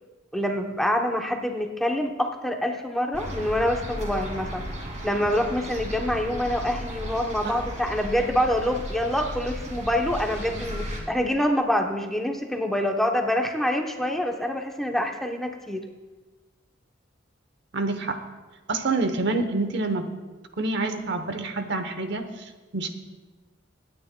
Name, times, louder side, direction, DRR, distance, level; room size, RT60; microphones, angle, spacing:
voice 1, 0.3-4.7 5.0-15.8, left 1 dB, ahead, 2 dB, 0.8 m, -26 dB
sound 1, 3.1-11.0, equal, 40° right, 2.4 m, -35 dB
voice 2, 17.7-18.2 18.7-20.1 20.6-22.9, right 3 dB, 65° right, 7 dB, 0.9 m, -27 dB
25.0 x 9.6 x 2.2 m, 1.2 s
head